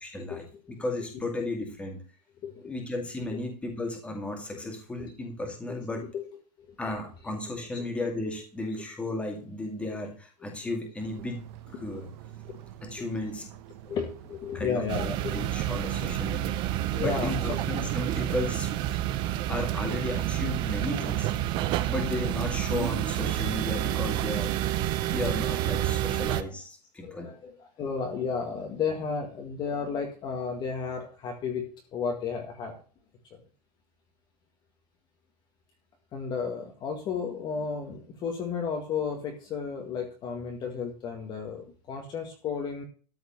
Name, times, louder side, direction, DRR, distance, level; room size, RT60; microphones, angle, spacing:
voice 1, 0.0-2.0 2.6-6.0 6.8-12.1 12.8-13.5 14.5-16.5 17.0-18.7 19.5-21.3 21.9-27.3, left 2 dB, 5° left, 3 dB, 2.2 m, -34 dB
sound 1, 11.0-25.3, right 9 dB, 40° right, 1.2 m, -46 dB
voice 2, 13.9-15.4 16.1-16.2 16.9-17.6 17.8-17.9 18.3-18.4 26.4-26.5 27.0-31.6 31.9-32.7 36.1-42.8, left 6 dB, 20° left, 2 dB, 1.9 m, -33 dB
sound 2, 14.9-26.4, right 13 dB, 20° right, 0.6 m, -29 dB
13.5 x 5.0 x 7.7 m, 0.39 s
supercardioid pair, 170°, 21 cm